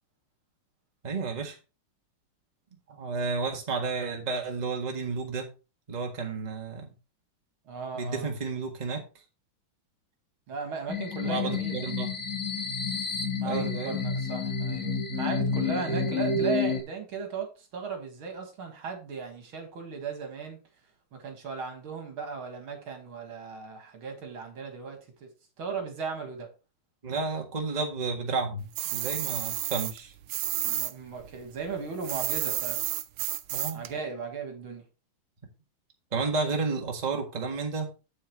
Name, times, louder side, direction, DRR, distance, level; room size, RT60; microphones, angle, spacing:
voice 1, 1.0-1.6 2.9-5.5 5.9-6.9 7.9-9.0 11.2-12.1 13.4-14.0 16.3-16.4 27.0-30.1 33.5-33.8 36.1-37.9, right 4 dB, 20° right, 1.5 m, -31 dB
voice 2, 7.7-8.3 10.5-11.9 13.4-20.6 21.1-25.3 25.6-26.5 30.6-32.8 33.7-34.8, right 5 dB, 75° right, 2.6 m, -36 dB
sound 1, 10.9-16.8, left 4 dB, 35° left, 2.0 m, -30 dB
sound 2, 28.7-30.9 31.2-33.9, right 13 dB, 90° right, 1.5 m, -31 dB
8.6 x 7.8 x 3.1 m
omnidirectional pair, 2.3 m